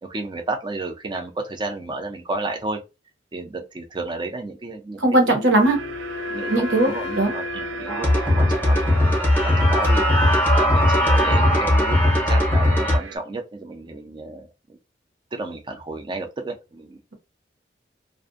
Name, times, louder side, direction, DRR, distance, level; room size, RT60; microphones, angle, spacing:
voice 1, 0.0-2.8 3.3-5.4 6.3-9.1 9.4-10.0 10.5-12.0 12.3-14.8 15.3-17.0, right 2 dB, 25° right, 0.4 m, -32 dB
voice 2, 5.0-5.8 6.5-6.9 7.2-7.3, right 2 dB, 70° right, 0.9 m, -18 dB
Wind instrument woodwind instrument, 5.2-9.2, left 5 dB, 40° left, 0.4 m, -35 dB
sound 1, 5.6-13.2, right 5 dB, 90° right, 0.4 m, -36 dB
sound 2, 7.9-13.0, left 1 dB, 10° left, 0.7 m, -18 dB
2.5 x 2.1 x 2.4 m
head